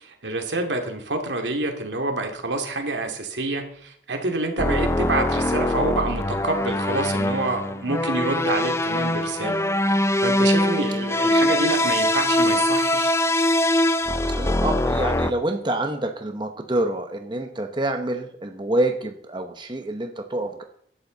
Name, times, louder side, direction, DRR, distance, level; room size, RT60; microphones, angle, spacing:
voice 1, 0.0-9.6 10.2-13.1, right 2 dB, 85° right, 4 dB, 2.5 m, -27 dB
sound 1, 4.6-15.3, left 1 dB, 15° left, 0.5 m, -22 dB
voice 2, 14.3-20.6, right 1 dB, 25° right, 5 dB, 1.0 m, -27 dB
16.5 x 11.5 x 4.0 m, 0.64 s
head